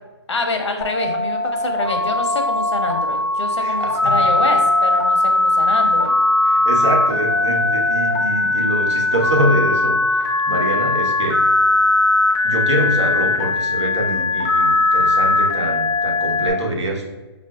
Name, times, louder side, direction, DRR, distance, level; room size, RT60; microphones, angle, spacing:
voice 1, 0.3-6.2, left 3 dB, 85° left, 4 dB, 0.8 m, -26 dB
Telephone, 0.8-16.5, left 2 dB, 15° left, 0.4 m, -19 dB
voice 2, 3.6-4.3 6.4-11.5 12.4-17.1, right 1 dB, 85° right, 0 dB, 1.0 m, -24 dB
5.0 x 2.6 x 2.2 m, 1.2 s
hypercardioid pair, 160°, 14 cm